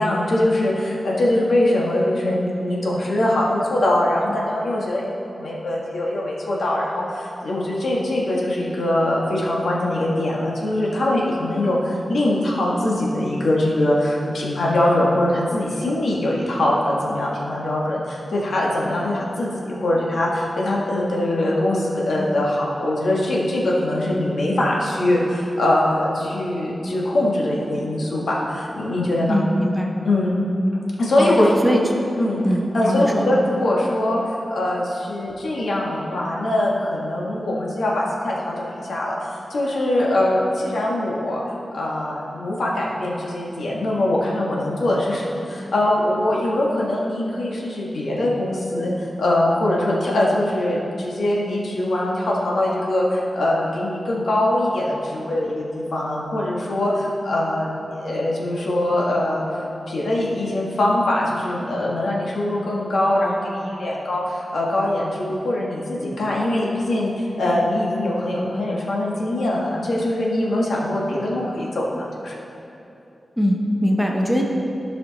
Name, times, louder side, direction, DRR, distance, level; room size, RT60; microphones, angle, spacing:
voice 1, 0.0-5.1 5.3-29.3 30.0-30.3 31.0-31.5 32.2-32.4 32.7-41.4 41.7-48.9 49.2-59.4 59.9-71.9 72.2-72.3, left 1 dB, 80° left, -4 dB, 1.5 m, -22 dB
voice 2, 29.3-29.9 31.2-31.9 32.4-33.3 73.4-74.4, equal, 5° right, 0 dB, 0.7 m, -21 dB
13.0 x 5.1 x 4.0 m, 2.8 s
wide cardioid pair, 155°, 0 cm